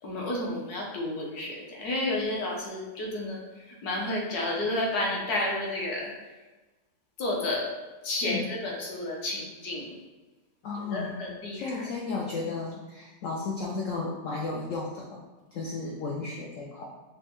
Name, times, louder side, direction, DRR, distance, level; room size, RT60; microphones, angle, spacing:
voice 1, 0.0-6.1 7.2-7.7 8.0-10.0 10.7-11.9, left 1 dB, 65° left, -2 dB, 1.2 m, -31 dB
voice 2, 8.2-8.5 10.6-11.2 11.5-15.2 15.5-16.8, left 3 dB, 90° left, -3 dB, 0.6 m, -34 dB
5.0 x 2.2 x 3.0 m, 1.2 s
omnidirectional pair, 1.9 m